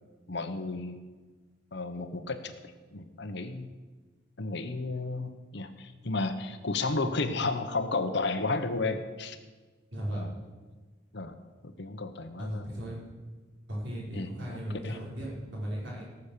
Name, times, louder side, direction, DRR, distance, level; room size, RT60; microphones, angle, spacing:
voice 1, 0.3-1.0 1.7-2.5 2.9-3.7 4.4-9.4 10.1-10.3 11.1-11.4 11.6-12.7 14.1-14.6 14.8-15.0, left 3 dB, 60° left, 9 dB, 1.0 m, -33 dB
voice 2, 9.9-10.3 12.4-13.0 13.7-16.0, equal, 65° right, -5 dB, 5.5 m, -36 dB
18.0 x 7.2 x 6.8 m, 1.4 s
head